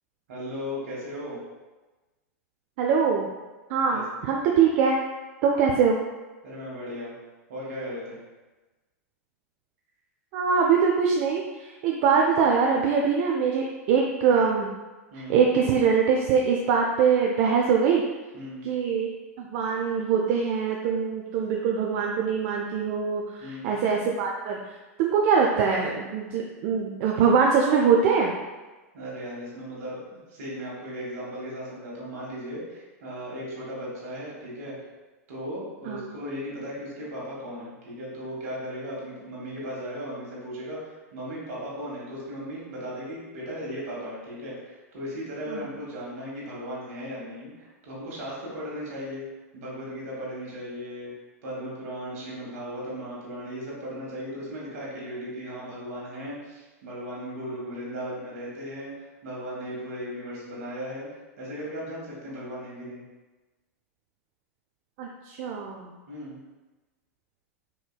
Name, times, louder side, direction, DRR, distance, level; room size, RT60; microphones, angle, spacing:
voice 1, 0.3-1.4 3.9-4.0 6.4-7.1 7.5-8.2 15.1-15.4 18.3-18.7 23.4-23.8 28.9-34.7 35.3-49.3 49.5-51.1 51.4-61.1 61.4-63.0 66.1-66.4, equal, 70° right, -5 dB, 1.5 m, -36 dB
voice 2, 2.8-3.3 3.7-5.0 5.4-6.0 10.3-14.7 15.1-18.0 18.6-19.1 19.4-24.7 25.0-28.3 35.9-36.0 45.5-45.7 65.0-65.9, right 6 dB, 50° right, 0 dB, 0.4 m, -23 dB
4.2 x 2.7 x 2.2 m, 1.2 s
hypercardioid pair, 100°, 8 cm